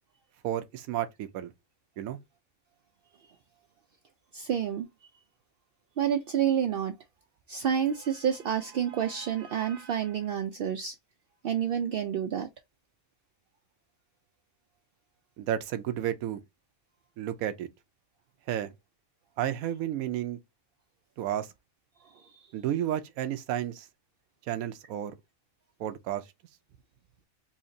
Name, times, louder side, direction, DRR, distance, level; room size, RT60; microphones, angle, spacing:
voice 1, 0.4-1.5 2.0-2.2 15.4-16.4 17.2-17.7 18.5-18.7 19.4-20.4 21.2-21.5 22.5-23.9 24.5-25.2 25.8-26.2, right 11 dB, 85° right, 1.0 m, -32 dB
voice 2, 4.3-4.9 6.0-6.9 7.5-11.0 11.4-12.5 22.0-22.5, right 8 dB, 65° right, 0.5 m, -29 dB
4.3 x 2.8 x 2.6 m
omnidirectional pair, 1.4 m